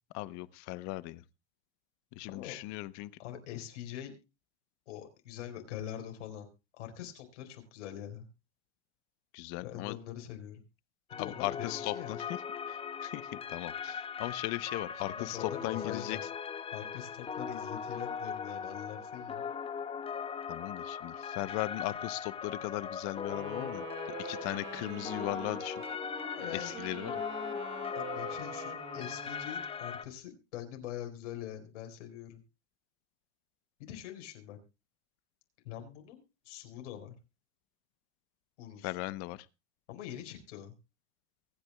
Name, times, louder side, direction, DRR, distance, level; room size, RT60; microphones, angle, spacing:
voice 1, 0.1-1.2 2.2-3.1 9.3-10.0 11.2-12.4 12.7-16.2 20.5-23.8 24.2-25.8 26.5-27.1 38.8-39.4, left 19 dB, 55° left, 0.9 m, -37 dB
voice 2, 2.3-2.8 3.2-4.1 4.9-6.5 6.8-8.3 9.6-10.6 11.1-12.2 15.0-16.2 16.7-19.4 26.2-26.7 27.9-32.4 33.8-34.6 35.6-37.1 38.6-39.0 39.9-40.7, left 11 dB, 80° left, 4.8 m, -44 dB
sound 1, 11.1-30.0, left 7 dB, 15° left, 0.8 m, -39 dB
Wind instrument woodwind instrument, 23.2-29.7, right 7 dB, 35° right, 2.2 m, -45 dB
24.0 x 9.5 x 2.3 m
supercardioid pair, 125°, 35 cm